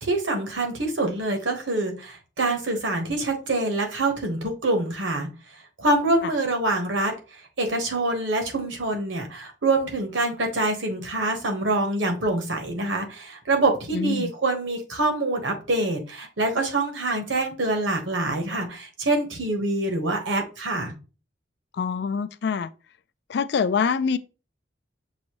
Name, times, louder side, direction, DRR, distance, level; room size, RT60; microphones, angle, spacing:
voice 1, 0.0-20.9, right 2 dB, 75° right, 1.1 m, -25 dB
voice 2, 13.9-14.3 21.7-22.7 23.3-24.2, left 6 dB, 55° left, 0.3 m, -25 dB
6.3 x 2.6 x 3.0 m
head